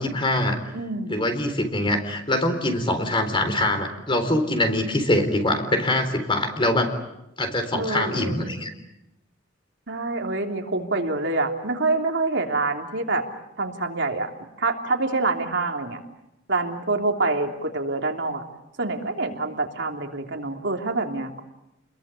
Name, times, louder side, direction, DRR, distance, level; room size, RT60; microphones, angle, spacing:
voice 1, 0.0-0.6 1.1-6.9 7.4-8.7, left 1 dB, 25° left, 7 dB, 4.0 m, -23 dB
voice 2, 0.7-1.1 7.7-8.5 9.9-13.2 13.6-14.3 14.6-16.0 16.5-18.4 18.8-21.4, right 3 dB, 65° right, 3 dB, 3.1 m, -26 dB
30.0 x 22.0 x 8.6 m, 0.86 s
head